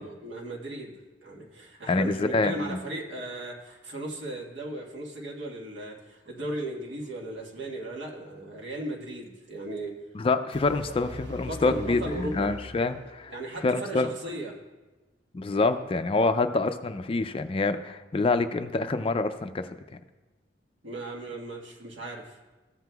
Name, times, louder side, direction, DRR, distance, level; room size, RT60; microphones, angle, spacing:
voice 1, 0.0-10.0 11.0-11.1 11.4-12.5 13.3-14.6 20.8-22.4, right 1 dB, 80° right, -2 dB, 1.6 m, -36 dB
voice 2, 1.9-2.8 10.1-13.3 13.6-14.1 15.3-19.8, left 3 dB, 30° left, 9 dB, 0.4 m, -26 dB
sound 1, 10.5-13.5, left 1 dB, 65° right, 1.0 m, -42 dB
14.5 x 7.7 x 2.3 m, 1.2 s
head